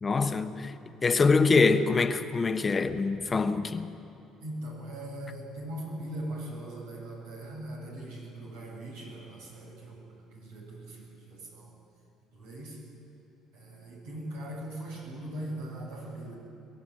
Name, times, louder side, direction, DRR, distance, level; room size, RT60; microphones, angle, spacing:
voice 1, 0.0-0.7 1.0-3.9, left 4 dB, 30° left, 1.2 m, -24 dB
voice 2, 4.4-10.0 10.3-11.7 12.3-12.8 13.5-16.4, right 1 dB, 90° right, 7.2 m, -40 dB
22.0 x 15.0 x 9.3 m
supercardioid pair, 70°, 0 cm